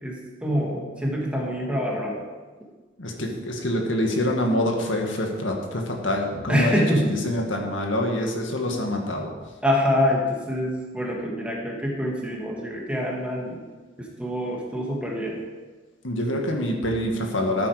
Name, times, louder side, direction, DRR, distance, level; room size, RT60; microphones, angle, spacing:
voice 1, 0.0-2.2 6.5-7.1 9.6-13.6 14.0-15.4, equal, 5° right, -3 dB, 2.3 m, -25 dB
voice 2, 3.0-9.3 16.0-17.7, left 1 dB, 85° left, 1 dB, 1.9 m, -26 dB
13.5 x 8.4 x 5.0 m, 1.3 s
head